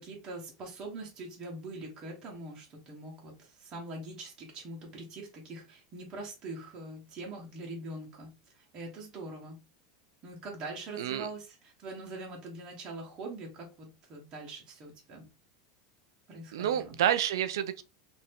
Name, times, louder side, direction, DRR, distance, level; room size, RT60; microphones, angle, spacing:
voice 1, 0.0-9.6 10.2-15.3 16.3-17.0, right 2 dB, 35° right, 1.0 m, -43 dB
voice 2, 16.5-17.8, right 10 dB, 85° right, 0.3 m, -29 dB
2.6 x 2.5 x 3.4 m
supercardioid pair, 130°, 2 cm